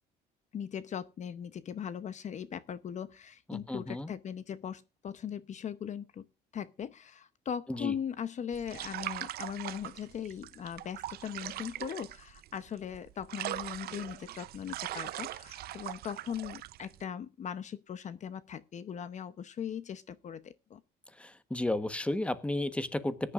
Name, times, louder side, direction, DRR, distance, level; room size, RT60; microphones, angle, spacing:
voice 1, 0.5-6.3 6.5-20.8, left 8 dB, 45° left, 0.8 m, -39 dB
voice 2, 3.5-4.1 7.7-7.9 21.2-23.3, left 1 dB, 5° left, 1.2 m, -33 dB
sound 1, 8.5-17.0, right 14 dB, 65° right, 0.7 m, -41 dB
20.0 x 10.5 x 2.5 m
cardioid pair, 110°, 17 cm